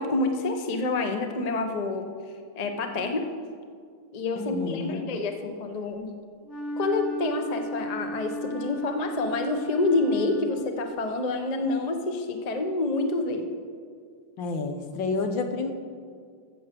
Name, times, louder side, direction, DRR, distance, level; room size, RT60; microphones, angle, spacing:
voice 1, 0.0-2.1 2.6-3.3 4.1-6.1 6.8-13.5, left 2 dB, 85° left, 5 dB, 0.3 m, -28 dB
voice 2, 4.4-5.1 14.4-15.7, left 3 dB, 65° left, 6 dB, 1.6 m, -30 dB
Wind instrument woodwind instrument, 6.4-10.9, equal, 35° left, 1.7 m, -35 dB
14.5 x 7.5 x 6.8 m, 2.1 s
omnidirectional pair, 2.4 m